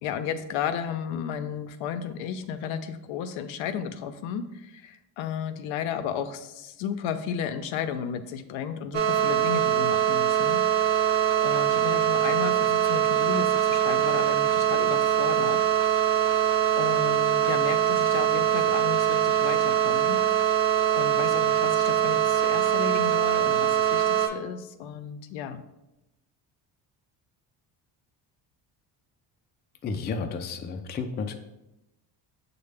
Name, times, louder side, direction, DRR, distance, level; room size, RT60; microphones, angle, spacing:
voice 1, 0.0-10.6 11.4-15.6 16.8-20.2 20.9-25.6, left 8 dB, 75° left, 10 dB, 0.5 m, -33 dB
sound 1, 8.9-24.3, right 10 dB, 65° right, 0.7 m, -23 dB
voice 2, 29.8-31.4, left 4 dB, 25° left, 6 dB, 0.3 m, -32 dB
6.3 x 2.1 x 3.3 m, 0.93 s
supercardioid pair, 75°, 48 cm